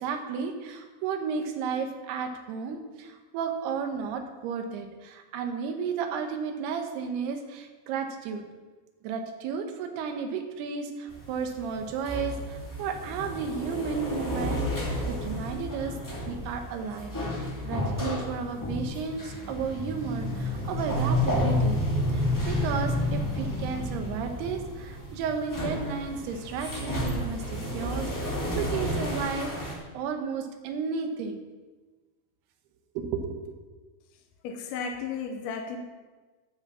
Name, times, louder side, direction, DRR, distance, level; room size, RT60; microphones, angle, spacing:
voice 1, 0.0-8.4 9.0-16.0 16.3-21.8 22.1-31.4 33.0-33.6, right 5 dB, 75° right, 5 dB, 3.0 m, -33 dB
sound 1, 11.1-29.7, left 1 dB, 15° left, 0.5 m, -31 dB
voice 2, 34.4-35.8, left 6 dB, 75° left, 2 dB, 2.7 m, -34 dB
12.5 x 6.4 x 7.2 m, 1.3 s
omnidirectional pair, 5.0 m